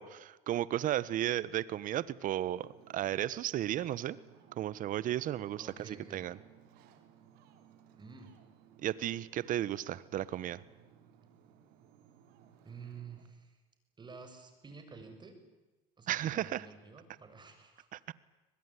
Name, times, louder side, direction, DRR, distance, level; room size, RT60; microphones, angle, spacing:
voice 1, 0.0-4.2 4.6-6.4 8.8-10.6 16.1-16.7 17.9-18.0, right 12 dB, 55° right, 19 dB, 1.3 m, -34 dB
Ocean, 2.4-13.3, right 9 dB, 75° right, 3.5 m, -61 dB
voice 2, 5.6-6.3 8.0-8.3 12.6-13.6 14.0-15.4 16.0-17.9, right 5 dB, 25° right, 7 dB, 6.8 m, -50 dB
24.0 x 20.5 x 9.9 m, 1.1 s
supercardioid pair, 95°, 17 cm